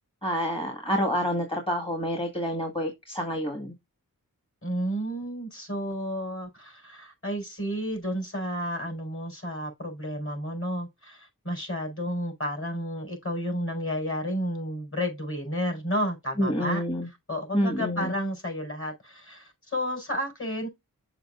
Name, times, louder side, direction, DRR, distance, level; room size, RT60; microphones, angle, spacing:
voice 1, 0.2-3.7 16.4-17.1 17.5-18.1, equal, 15° left, 1.7 m, -28 dB
voice 2, 4.6-20.7, equal, 35° left, 4.5 m, -32 dB
6.8 x 6.4 x 2.4 m
wide cardioid pair, 65°, 35 cm